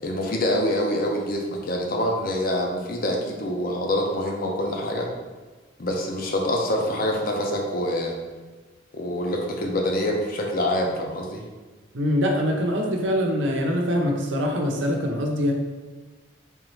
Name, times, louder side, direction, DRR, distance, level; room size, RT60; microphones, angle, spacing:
voice 1, 0.0-5.1 5.8-8.1 8.9-11.4, left 1 dB, 50° left, 0 dB, 0.6 m, -25 dB
voice 2, 11.9-15.5, equal, 85° right, 1 dB, 0.7 m, -23 dB
3.6 x 3.0 x 3.1 m, 1.3 s
head